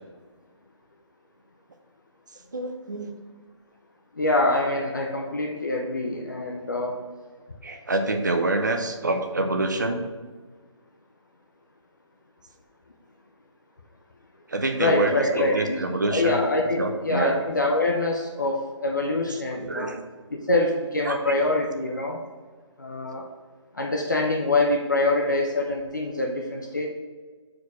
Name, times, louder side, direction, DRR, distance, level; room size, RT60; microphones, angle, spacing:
voice 1, 2.5-3.1 7.6-10.0 14.5-16.4 16.8-17.3 19.2-20.0 21.0-21.2, right 2 dB, 40° right, 6 dB, 0.6 m, -26 dB
voice 2, 4.2-7.0 14.8-19.9 20.3-22.2 22.8-23.2 23.7-26.9, left 2 dB, 40° left, 2 dB, 0.6 m, -25 dB
6.2 x 4.8 x 4.7 m, 1.5 s
hypercardioid pair, 180°, 16 cm